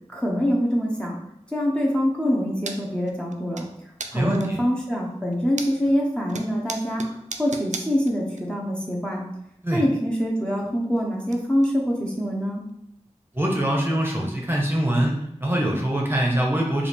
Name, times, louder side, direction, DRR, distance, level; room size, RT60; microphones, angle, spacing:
voice 1, 0.1-1.2 1.5-3.7 4.1-9.2 9.7-12.6, equal, 10° left, -3 dB, 0.8 m, -25 dB
sound 1, 2.6-2.8 3.1-3.7 4.0-4.6 5.1-6.0 6.3-8.4 8.7-8.8 10.0-10.1 10.4-11.3 11.6-11.7 12.1-12.2 12.7-12.8 13.3-13.4 14.6-14.7, right 4 dB, 90° right, 0.4 m, -36 dB
voice 2, 4.1-4.6 9.6-9.8 13.3-16.9, right 1 dB, 20° right, -1 dB, 0.9 m, -23 dB
4.6 x 2.5 x 3.4 m, 0.81 s
wide cardioid pair, 45°, 12 cm